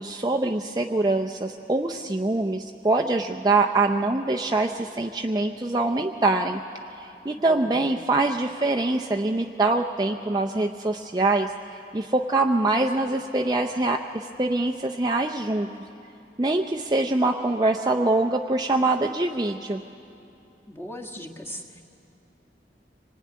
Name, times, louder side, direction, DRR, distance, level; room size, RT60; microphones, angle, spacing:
voice 1, 0.0-6.6 7.2-11.5 11.9-15.7 16.4-19.8, right 2 dB, 20° right, 2 dB, 0.6 m, -24 dB
voice 2, 7.4-7.8 20.7-21.8, left 1 dB, 15° left, 0 dB, 1.6 m, -38 dB
25.0 x 19.5 x 9.4 m, 2.8 s
head